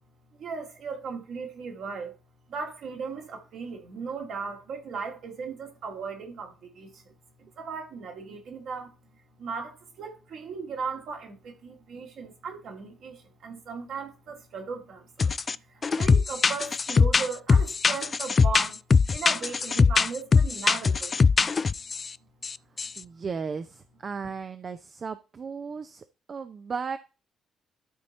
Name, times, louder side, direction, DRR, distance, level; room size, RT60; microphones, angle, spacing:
voice 1, 0.3-2.1 2.5-7.0 7.4-8.9 9.4-18.8 19.1-21.2, right 5 dB, 65° right, 2.3 m, -37 dB
sound 1, 15.2-15.6 15.8-22.1 22.4-22.5 22.8-23.0, left 5 dB, 40° left, 0.3 m, -22 dB
voice 2, 23.0-27.0, right 5 dB, 45° right, 0.6 m, -35 dB
12.5 x 4.2 x 4.1 m
hypercardioid pair, 40°, 0 cm